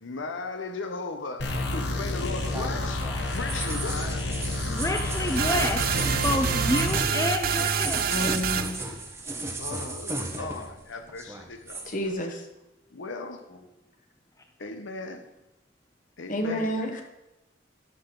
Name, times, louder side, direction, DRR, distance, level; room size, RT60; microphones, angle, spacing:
voice 1, 0.0-4.3 9.5-11.9 12.9-13.4 14.6-15.3 16.2-16.8, left 3 dB, 80° left, 7 dB, 0.9 m, -37 dB
sound 1, 1.4-7.0, left 2 dB, 60° left, 1.3 m, -30 dB
sound 2, 1.7-10.8 11.1-11.9, right 2 dB, 15° right, 0.9 m, -36 dB
voice 2, 4.6-5.8 6.2-8.3, left 1 dB, 15° left, 4 dB, 0.6 m, -28 dB
sound 3, 5.4-8.9, right 7 dB, 50° right, 0.4 m, -27 dB
voice 3, 8.1-8.8 11.8-12.4 16.3-17.0, equal, 40° left, 4 dB, 1.3 m, -29 dB
12.0 x 6.8 x 3.9 m, 0.95 s
head